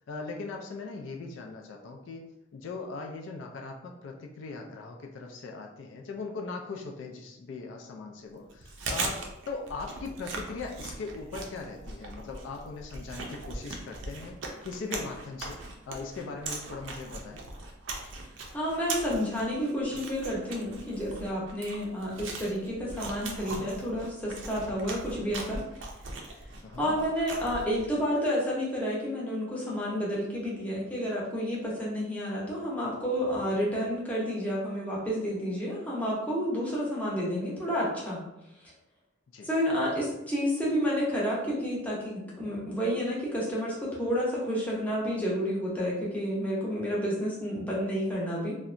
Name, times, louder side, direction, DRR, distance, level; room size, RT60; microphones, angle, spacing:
voice 1, 0.1-2.2 2.5-14.4 14.6-15.6 15.9-17.4 26.6-27.0 39.3-39.5, left 4 dB, 70° left, 1 dB, 0.3 m, -39 dB
Chewing mastication, 8.5-28.0, right 3 dB, 70° right, 0.4 m, -40 dB
voice 2, 18.5-25.6 26.8-38.2 39.4-48.6, equal, 10° left, -6 dB, 0.6 m, -30 dB
2.7 x 2.1 x 2.5 m, 0.88 s
head